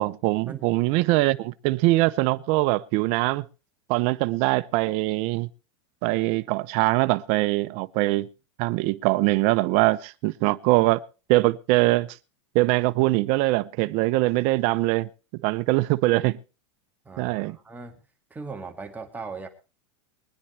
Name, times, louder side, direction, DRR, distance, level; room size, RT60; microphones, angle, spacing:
voice 1, 0.0-3.4 3.9-5.5 6.0-8.3 8.6-11.0 11.3-12.2 12.5-15.1 15.4-16.4 17.2-17.6, right 20 dB, 45° right, 0.7 m, -22 dB
voice 2, 17.0-17.9 18.3-19.5, right 4 dB, 10° right, 2.0 m, -38 dB
23.5 x 9.9 x 3.3 m
supercardioid pair, 135°, 15 cm